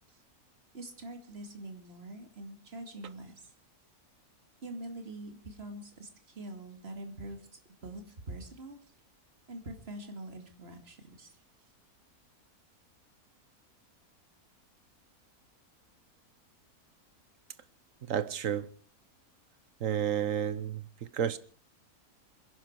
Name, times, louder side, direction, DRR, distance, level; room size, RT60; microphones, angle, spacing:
voice 1, 0.7-3.5 4.6-8.8 9.5-11.3, right 1 dB, 40° right, 2.6 m, -44 dB
voice 2, 18.1-18.7 19.8-20.9 21.1-21.4, right 9 dB, 60° right, 1.3 m, -31 dB
26.5 x 11.0 x 4.6 m
omnidirectional pair, 1.6 m